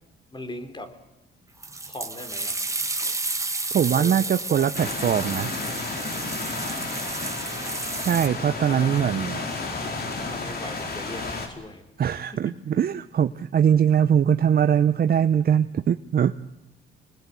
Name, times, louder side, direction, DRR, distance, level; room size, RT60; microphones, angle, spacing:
voice 1, 0.3-0.9 1.9-2.6 4.0-4.7 6.9-7.7 8.6-9.0 9.7-10.0 10.3-12.8, left 1 dB, 25° left, 7 dB, 3.6 m, -40 dB
sound 1, 1.6-8.3, right 3 dB, 15° right, 1.9 m, -31 dB
voice 2, 3.7-5.5 7.9-9.4 12.0-16.3, right 8 dB, 50° right, 10 dB, 0.8 m, -22 dB
sound 2, 4.7-11.5, left 3 dB, 50° left, 4.7 m, -32 dB
26.5 x 19.0 x 8.2 m, 0.98 s
cardioid pair, 90°, 20 cm